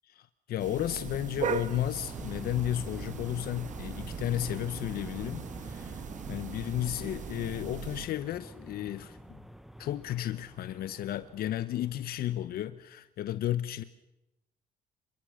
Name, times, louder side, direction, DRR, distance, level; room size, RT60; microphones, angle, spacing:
voice 1, 0.1-6.0 6.3-9.4 9.8-13.8, left 12 dB, 65° left, 13 dB, 1.0 m, -33 dB
sound 1, 0.6-8.1, right 7 dB, 45° right, 1.4 m, -39 dB
sound 2, 1.9-12.8, equal, ahead, 1.2 m, -48 dB
27.5 x 23.5 x 6.5 m, 0.90 s
cardioid pair, 110°, 17 cm